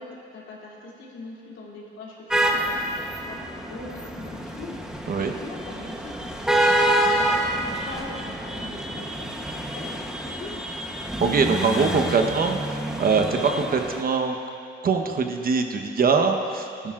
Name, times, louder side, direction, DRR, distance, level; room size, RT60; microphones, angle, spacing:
voice 1, 0.0-6.8 7.3-7.4 7.8-10.6, left 3 dB, 75° left, -4 dB, 2.9 m, -42 dB
sound 1, 2.3-14.0, right 1 dB, 5° right, 1.0 m, -27 dB
voice 2, 11.2-14.4 14.8-16.9, right 5 dB, 45° right, 4 dB, 1.1 m, -23 dB
17.5 x 11.5 x 2.5 m, 2.5 s
cardioid pair, 90°, 20 cm